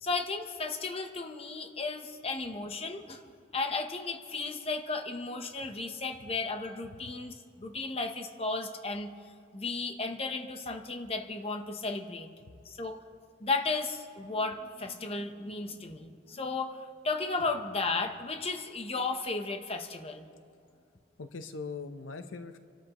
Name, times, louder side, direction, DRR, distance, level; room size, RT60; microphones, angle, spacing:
voice 1, 0.0-3.2 3.5-9.1 9.5-12.3 12.6-13.0 13.4-20.3, left 3 dB, 30° left, 5 dB, 0.9 m, -34 dB
voice 2, 21.2-22.6, left 4 dB, 85° left, 9 dB, 0.7 m, -42 dB
28.0 x 12.5 x 3.0 m, 2.4 s
head